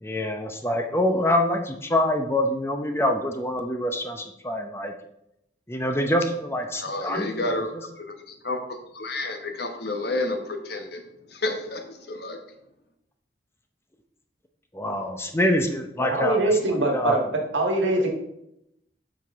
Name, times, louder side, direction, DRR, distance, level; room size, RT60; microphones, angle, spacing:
voice 1, 0.0-4.9 5.7-7.3 14.7-16.4 16.9-17.1, left 1 dB, 15° left, 5 dB, 0.6 m, -25 dB
voice 2, 6.8-7.7 8.0-11.0 11.3-12.4, left 2 dB, 60° left, 5 dB, 1.1 m, -30 dB
voice 3, 16.0-17.3 17.5-18.1, right 2 dB, 80° right, 1 dB, 1.6 m, -23 dB
7.7 x 6.0 x 3.6 m, 0.81 s
head